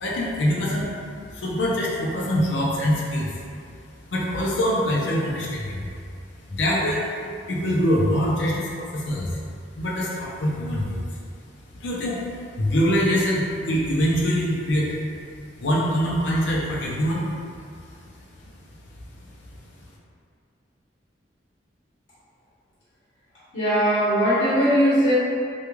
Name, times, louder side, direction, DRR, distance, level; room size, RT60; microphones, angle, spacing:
voice 1, 0.0-0.9 1.3-3.3 4.1-5.9 6.5-9.4 9.8-11.0 11.8-12.2 12.6-15.0 15.6-17.3, equal, 70° left, -4 dB, 0.5 m, -24 dB
voice 2, 23.5-25.1, equal, 85° left, -12 dB, 0.9 m, -19 dB
2.3 x 2.2 x 3.0 m, 2.3 s
head